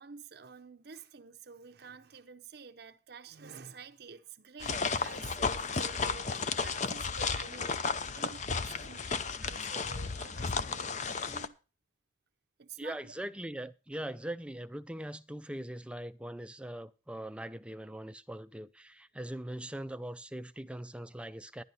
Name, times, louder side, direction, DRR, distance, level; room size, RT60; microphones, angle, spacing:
voice 1, 0.0-11.6 12.6-13.1, right 5 dB, 55° right, 0.7 m, -50 dB
sound 1, 4.6-11.5, left 5 dB, 40° left, 0.6 m, -33 dB
voice 2, 12.8-21.6, right 1 dB, 5° right, 0.5 m, -41 dB
11.5 x 11.0 x 4.1 m
head